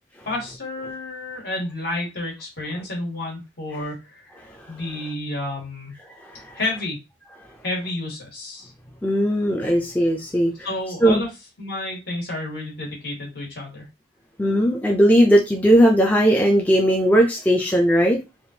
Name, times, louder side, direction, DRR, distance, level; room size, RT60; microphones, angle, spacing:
voice 1, 0.2-5.9 6.5-7.0 7.6-8.7 10.6-11.3 11.6-13.9, left 2 dB, 60° left, -2 dB, 1.6 m, -30 dB
voice 2, 9.0-10.5 11.0-11.2 14.4-18.2, equal, 10° left, 1 dB, 0.4 m, -18 dB
3.4 x 2.4 x 2.7 m, 0.25 s
head